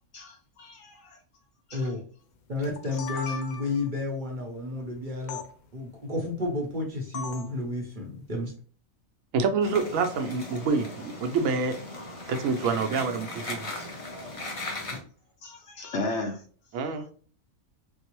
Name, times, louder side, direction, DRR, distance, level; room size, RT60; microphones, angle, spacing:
voice 1, 0.1-1.2 1.7-1.9 15.4-16.4, left 2 dB, 60° left, 4 dB, 0.9 m, -35 dB
voice 2, 1.7-2.0 2.5-5.4 5.7-8.5, left 2 dB, 45° right, 1 dB, 0.7 m, -31 dB
sound 1, 2.6-3.9 5.3-5.5 7.1-7.6, left 6 dB, 90° left, 1.1 m, -37 dB
voice 3, 9.3-11.7 12.3-13.7 16.7-17.0, right 4 dB, 75° right, 6 dB, 1.0 m, -27 dB
sound 2, 9.6-15.0, left 2 dB, 35° left, 0.6 m, -38 dB
4.5 x 2.0 x 3.0 m, 0.43 s
omnidirectional pair, 1.5 m